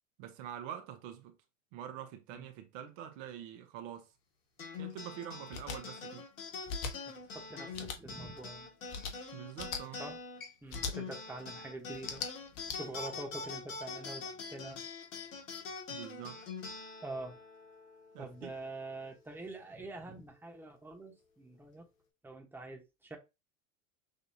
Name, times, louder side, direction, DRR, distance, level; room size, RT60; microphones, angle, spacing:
voice 1, 0.2-1.4 1.7-4.1 4.8-6.2 9.3-10.0 15.9-16.4 18.1-18.5, right 10 dB, 65° right, 1.2 m, -45 dB
sound 1, 4.6-19.3, left 4 dB, 85° left, 2.0 m, -45 dB
sound 2, 5.5-5.8 6.7-6.9 7.7-8.0 8.9-9.1 9.6-9.8 10.7-10.9 11.9-12.8, left 5 dB, 55° left, 1.4 m, -38 dB
voice 2, 7.0-8.7 10.0-10.2 10.6-12.3 12.7-14.8 17.0-17.4 18.2-21.9 22.2-23.2, right 2 dB, 5° right, 1.2 m, -45 dB
6.6 x 2.6 x 2.8 m
hypercardioid pair, 100°, 39 cm